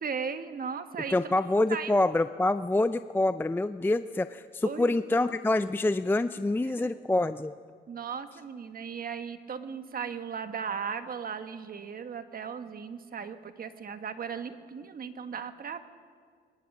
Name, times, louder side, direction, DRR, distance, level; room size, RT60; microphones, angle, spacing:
voice 1, 0.0-1.3 1.7-2.0 4.6-5.0 6.6-6.9 7.9-15.8, right 6 dB, 45° right, 9 dB, 1.4 m, -37 dB
voice 2, 1.1-7.5, left 2 dB, 10° left, 12 dB, 0.4 m, -26 dB
23.0 x 21.5 x 6.1 m, 2.1 s
cardioid pair, 90°, 20 cm